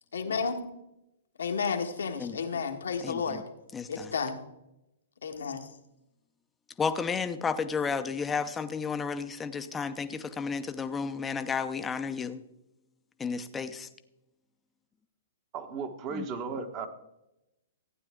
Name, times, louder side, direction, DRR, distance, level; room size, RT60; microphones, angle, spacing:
voice 1, 0.1-0.6 1.4-3.4 3.9-4.4 5.2-5.7, left 5 dB, 75° left, 5 dB, 1.6 m, -31 dB
voice 2, 2.2-2.6 3.0-3.4 3.7-4.1 6.8-12.4 13.2-13.9 16.1-16.3, left 5 dB, 15° left, 10 dB, 0.8 m, -32 dB
voice 3, 15.5-16.9, right 5 dB, 35° right, 6 dB, 1.4 m, -35 dB
15.0 x 9.1 x 3.7 m, 0.90 s
hypercardioid pair, 125°, 0 cm